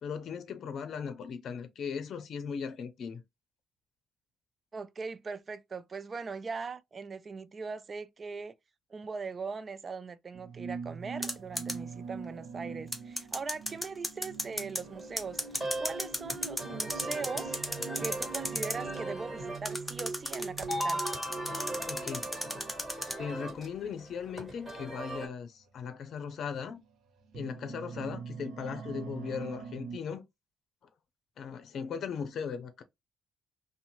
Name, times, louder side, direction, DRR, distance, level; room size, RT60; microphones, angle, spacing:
voice 1, 0.0-3.2 21.9-22.3 23.2-26.8 27.3-30.3 31.4-32.8, left 6 dB, 65° left, 0.6 m, -38 dB
voice 2, 4.7-8.5 8.9-15.4 15.8-17.6 18.0-21.0, right 4 dB, 40° right, 0.3 m, -40 dB
sound 1, 10.3-22.6 23.4-23.7 24.9-25.0 25.6-25.8 26.5-30.0, right 5 dB, 80° right, 0.6 m, -43 dB
clock wind, 11.2-11.7 12.9-14.8 15.2-18.8 19.7-23.1, left 1 dB, 5° left, 0.6 m, -34 dB
sound 2, 14.8-25.3, right 1 dB, 10° right, 1.7 m, -39 dB
2.6 x 2.1 x 3.0 m
cardioid pair, 90°, 0 cm